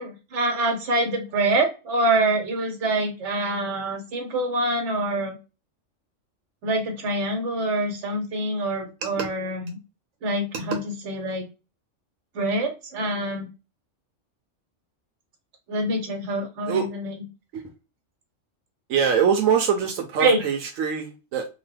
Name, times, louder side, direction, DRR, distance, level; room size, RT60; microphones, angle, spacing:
voice 1, 0.0-5.3 6.6-9.8 10.2-11.4 12.3-13.5 15.7-17.1 20.2-20.4, right 2 dB, 70° right, 1.2 m, -25 dB
voice 2, 18.9-21.5, right 7 dB, 90° right, 1.0 m, -23 dB
2.9 x 2.2 x 3.2 m
omnidirectional pair, 1.3 m